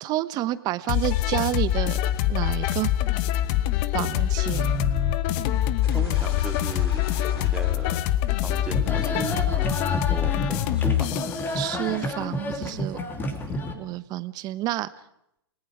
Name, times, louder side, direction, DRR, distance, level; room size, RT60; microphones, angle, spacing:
voice 1, 0.0-2.0 2.3-2.9 3.9-4.8 11.5-13.0 13.7-14.9, right 15 dB, 30° right, 15 dB, 1.0 m, -29 dB
sound 1, 0.9-11.5, left 13 dB, 40° left, 1.0 m, -24 dB
voice 2, 4.5-5.3 5.9-8.1 8.4-11.2, right 4 dB, 5° right, 5 dB, 2.2 m, -36 dB
sound 2, 5.8-8.9, left 3 dB, 75° left, 6.3 m, -41 dB
sound 3, 8.7-13.7, left 1 dB, 15° left, 2.6 m, -30 dB
29.5 x 19.0 x 4.9 m, 0.77 s
hypercardioid pair, 125°, 13 cm